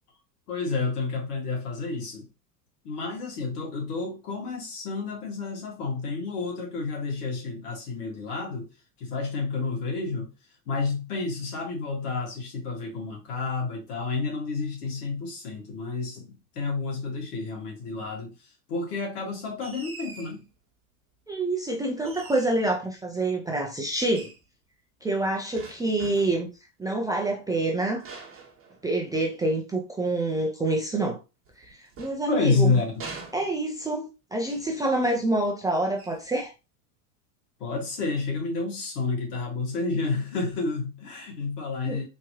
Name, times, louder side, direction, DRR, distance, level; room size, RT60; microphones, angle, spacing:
voice 1, 0.5-2.3 2.8-8.7 9.0-10.3 10.7-20.4 32.3-32.9 37.6-42.0, left 4 dB, 75° left, 2.0 m, -30 dB
sound 1, 19.6-20.4 22.0-22.7 24.1-24.4 25.6-26.5 28.0-29.3 31.5-32.6 33.0-33.9 34.4-34.7 35.0-35.3 36.0-36.3, right 4 dB, 30° right, 1.3 m, -44 dB
voice 2, 21.3-24.3 25.0-26.5 26.8-28.0 28.8-31.2 31.7-32.8 33.3-36.5 41.8-42.0, right 2 dB, 10° right, 0.4 m, -27 dB
3.8 x 2.9 x 2.9 m
hypercardioid pair, 105°, 47 cm